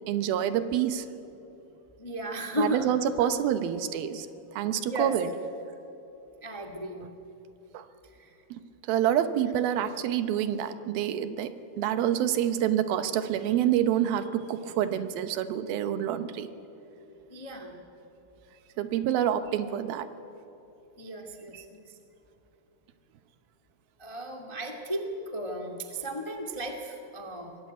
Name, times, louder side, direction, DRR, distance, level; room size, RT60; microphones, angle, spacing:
voice 1, 0.1-1.1 2.6-4.3 4.5-5.3 7.7-7.9 8.5-8.6 8.9-16.5 18.8-20.1, right 10 dB, 80° right, 11 dB, 2.8 m, -27 dB
voice 2, 2.0-2.9 3.2-3.3 4.8-5.4 6.4-7.1 8.0-8.3 17.3-17.8 21.0-22.0 24.0-27.6, equal, 40° left, 2 dB, 0.4 m, -35 dB
24.0 x 19.5 x 9.2 m, 2.9 s
omnidirectional pair, 4.3 m